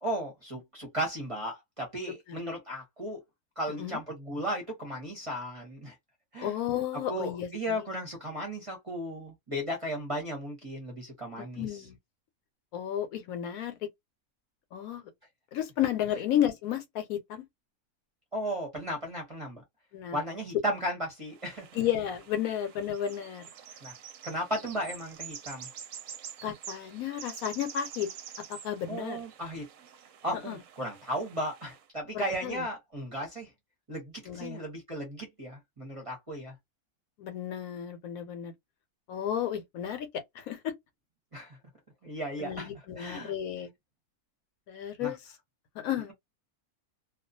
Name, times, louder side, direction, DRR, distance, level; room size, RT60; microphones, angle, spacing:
voice 1, 0.0-3.2 3.6-5.9 6.3-6.5 6.9-11.6 18.3-19.6 20.1-21.7 23.8-23.9 24.2-25.7 28.9-29.6 30.2-33.5 33.9-36.5 41.3-41.6 42.0-42.7 43.0-43.3 45.0-45.1, equal, 30° right, 0.7 m, -35 dB
voice 2, 6.4-7.8 11.4-12.0 12.7-13.7 14.7-15.1 15.5-17.5 19.9-20.2 21.7-23.4 26.4-28.1 28.5-29.2 30.5-30.6 32.1-32.6 34.3-34.6 37.2-38.5 39.1-40.1 40.3-40.7 42.4-43.7 44.7-45.2 45.8-46.1, left 10 dB, 75° left, 1.0 m, -32 dB
sound 1, 21.3-31.8, right 8 dB, 70° right, 0.9 m, -47 dB
2.3 x 2.3 x 2.5 m
omnidirectional pair, 1.6 m